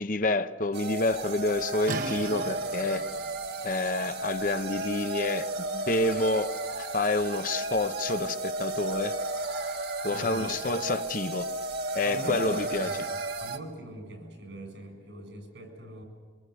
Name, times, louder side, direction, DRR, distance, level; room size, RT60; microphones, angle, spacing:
voice 1, 0.0-3.0 3.6-6.5 6.8-9.1 10.0-11.5 11.9-12.9, left 2 dB, 50° left, 0.9 m, -28 dB
sound 1, 0.7-13.6, right 2 dB, 65° right, 1.7 m, -33 dB
sound 2, 1.9-7.5, right 3 dB, 50° right, 1.1 m, -42 dB
voice 2, 10.0-10.5 12.0-16.0, right 1 dB, 85° right, 7.6 m, -43 dB
25.0 x 24.5 x 6.9 m
head